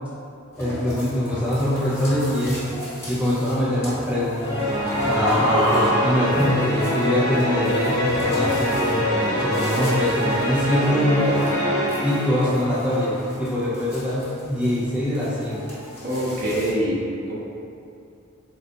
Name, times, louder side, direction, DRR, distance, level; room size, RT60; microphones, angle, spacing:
sound 1, 0.6-16.7, equal, 10° left, 1.0 m, -32 dB
voice 1, 0.6-2.7 3.1-4.6 5.0-11.4 12.0-15.7, left 1 dB, 5° right, -9 dB, 0.5 m, -23 dB
sound 2, 4.4-13.0, equal, 35° left, 1.2 m, -24 dB
voice 2, 16.0-17.4, equal, 50° right, -7 dB, 0.9 m, -25 dB
3.8 x 3.8 x 2.3 m, 2.6 s
head